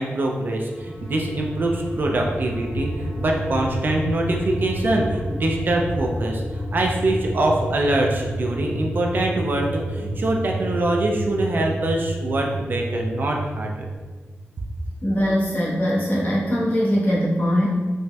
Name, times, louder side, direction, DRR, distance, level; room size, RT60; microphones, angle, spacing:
voice 1, 0.0-6.4 6.7-13.7, right 1 dB, 50° right, 0 dB, 0.3 m, -24 dB
sound 1, 0.7-14.0, right 1 dB, 20° left, 0.8 m, -30 dB
voice 2, 15.0-17.7, equal, 50° left, -6 dB, 0.8 m, -21 dB
4.0 x 2.1 x 2.2 m, 1.4 s
wide cardioid pair, 145°, 4 cm